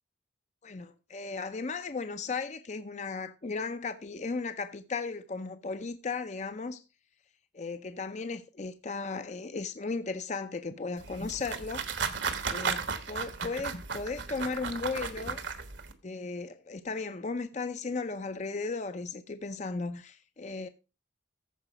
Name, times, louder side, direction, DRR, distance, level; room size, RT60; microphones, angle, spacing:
voice 1, 0.6-6.8 7.5-11.9 12.5-15.4 16.0-20.7, left 4 dB, 35° left, 0.5 m, -36 dB
sound 1, 10.7-10.8 11.2-11.5 12.1-12.7 13.4-14.0 14.9-15.5 15.9-16.5 17.5-18.2 19.1-19.2, equal, 80° left, 4.6 m, -49 dB
sound 2, 11.0-15.9, right 5 dB, 75° right, 1.3 m, -35 dB
14.5 x 4.9 x 4.9 m
head